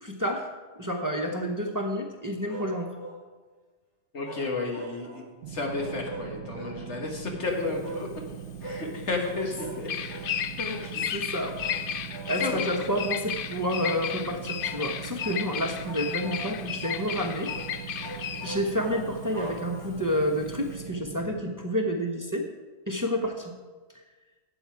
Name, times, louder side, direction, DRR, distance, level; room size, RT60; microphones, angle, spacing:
voice 1, 0.0-0.5 0.8-2.9 11.1-11.6 12.2-17.5 18.4-22.5 22.9-23.5, equal, 20° right, 1 dB, 0.9 m, -29 dB
sound 1, 2.5-3.2 4.2-5.3 5.8-6.8 7.8-8.1 8.6-8.9 9.6-9.8 10.1-10.3 10.7-10.9 11.6-11.8 12.1-12.4 12.9-13.2 13.8-14.1 14.6-14.9 15.2-15.4 15.8-16.5 16.8-17.1 17.4-17.7 18.0-20.1, right 1 dB, 25° left, 2.8 m, -41 dB
voice 2, 4.1-8.1 8.6-10.3 10.6-11.0 12.4-12.6, left 3 dB, 75° left, 1 dB, 1.9 m, -32 dB
sound 2, 5.4-21.4, right 10 dB, 80° right, 0.9 m, -41 dB
Bird vocalization bird call bird song, 7.5-20.7, left 9 dB, 60° left, 0.6 m, -34 dB
12.5 x 8.3 x 4.7 m, 1.4 s
omnidirectional pair, 1.2 m